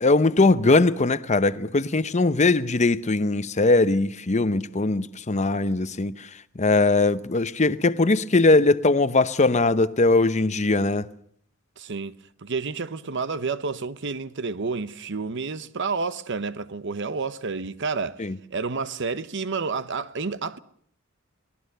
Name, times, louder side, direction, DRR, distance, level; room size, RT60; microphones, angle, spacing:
voice 1, 0.0-6.1 6.6-11.1 18.2-18.4, left 3 dB, 35° left, 0.8 m, -20 dB
voice 2, 11.8-18.2 18.5-20.6, right 4 dB, 60° right, 0.9 m, -30 dB
24.0 x 18.0 x 6.7 m
head